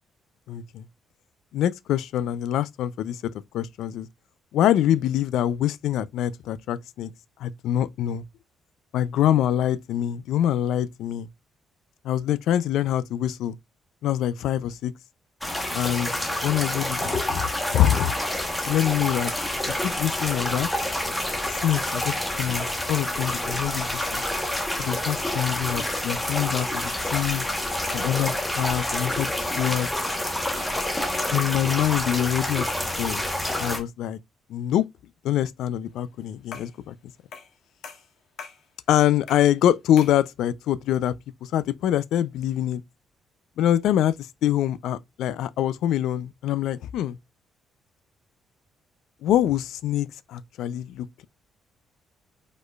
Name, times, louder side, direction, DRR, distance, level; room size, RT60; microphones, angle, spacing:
voice 1, 0.5-0.9 1.5-3.2 3.5-4.1 4.5-7.1 7.4-8.2 8.9-11.3 12.0-13.6 14.0-14.9 15.7-16.1 16.4-18.1 18.7-19.3 19.8-20.7 21.5-24.2 24.8-27.4 27.9-29.9 31.3-33.2 33.6-34.2 34.5-34.8 35.2-36.9 38.9-41.1 41.4-42.8 43.6-47.2 49.2-51.3, left 11 dB, 80° left, 0.4 m, -25 dB
sound 1, 15.4-33.8, left 1 dB, 10° left, 1.0 m, -28 dB
sound 2, 36.5-36.8 37.3-37.6 37.8-38.6 39.3-39.5 40.0-40.2, left 6 dB, 65° left, 1.2 m, -42 dB
5.0 x 4.2 x 2.3 m
cardioid pair, 135°, 0 cm